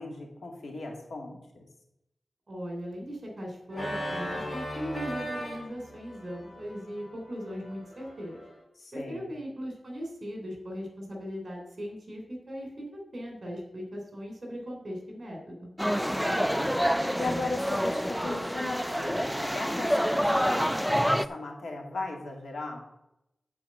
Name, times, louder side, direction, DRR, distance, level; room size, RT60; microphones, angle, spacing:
voice 1, 0.0-1.7 8.8-9.3 16.0-16.7 17.2-22.8, left 2 dB, 85° left, 1 dB, 2.1 m, -38 dB
voice 2, 2.5-8.4 8.9-15.7, equal, 40° right, 1 dB, 3.2 m, -39 dB
Organ, 3.7-8.6, equal, 25° left, 2.8 m, -38 dB
sound 1, 15.8-21.3, equal, ahead, 0.3 m, -27 dB
8.9 x 4.8 x 7.4 m, 0.86 s
wide cardioid pair, 135°, 0 cm